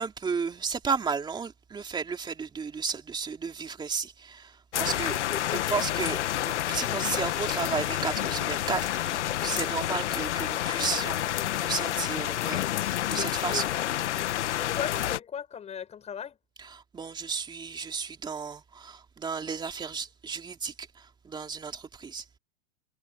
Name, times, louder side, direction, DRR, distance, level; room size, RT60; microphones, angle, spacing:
voice 1, 0.0-5.2 5.5-6.2 6.4-13.7 16.6-22.2, right 5 dB, 15° right, 2.8 m, -33 dB
sound 1, 4.7-15.2, left 13 dB, 85° left, 1.5 m, -29 dB
voice 2, 5.3-6.0 13.5-13.9 14.6-16.4, left 8 dB, 20° left, 7.2 m, -37 dB
supercardioid pair, 150°, 34 cm